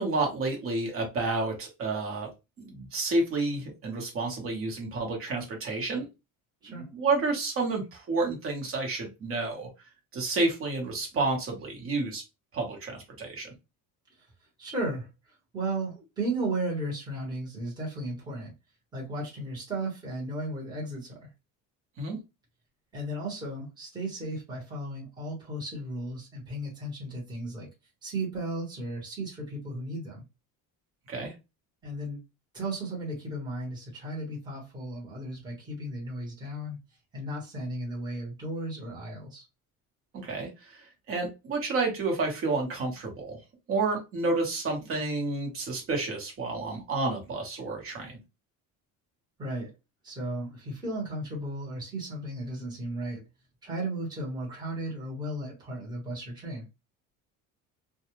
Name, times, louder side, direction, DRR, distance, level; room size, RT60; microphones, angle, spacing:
voice 1, 0.0-2.3 2.6-6.1 6.7-9.7 10.1-12.2 12.5-13.5 22.0-22.2 31.1-31.3 40.1-43.4 43.7-48.2, right 3 dB, 40° right, 1.1 m, -30 dB
voice 2, 14.6-15.1 15.5-18.5 18.9-21.3 22.9-27.7 28.0-30.2 31.8-32.2 32.5-36.8 37.1-39.4 49.4-49.7 50.0-53.2 53.6-56.6, right 1 dB, 15° right, 1.1 m, -35 dB
2.3 x 2.3 x 2.9 m
cardioid pair, 150°, 33 cm